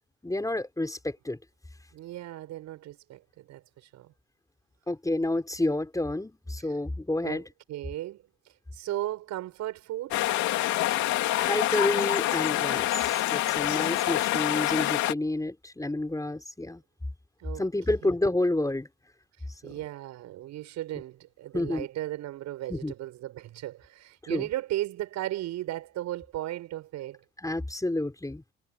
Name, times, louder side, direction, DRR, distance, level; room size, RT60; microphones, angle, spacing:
voice 1, 0.2-1.4 4.9-7.4 11.4-16.8 17.6-18.9 19.6-19.7 21.5-21.9 22.7-22.9 24.2-24.5 27.4-28.4, left 2 dB, 10° left, 5.5 m, -29 dB
voice 2, 1.9-4.1 6.6-6.8 7.2-7.4 7.7-10.2 17.4-17.6 19.4-27.2, right 14 dB, 70° right, 6.9 m, -36 dB
sound 1, 10.1-15.1, left 15 dB, 75° left, 3.0 m, -26 dB
hypercardioid pair, 60°, 29 cm